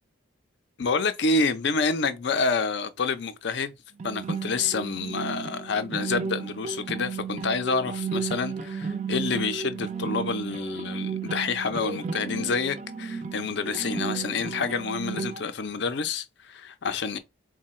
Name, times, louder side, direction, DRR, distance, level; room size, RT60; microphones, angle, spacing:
voice 1, 0.8-3.7 4.0-17.2, left 4 dB, 60° left, 0.5 m, -28 dB
sound 1, 4.0-15.4, right 5 dB, 35° right, 0.4 m, -33 dB
3.7 x 2.1 x 4.2 m
head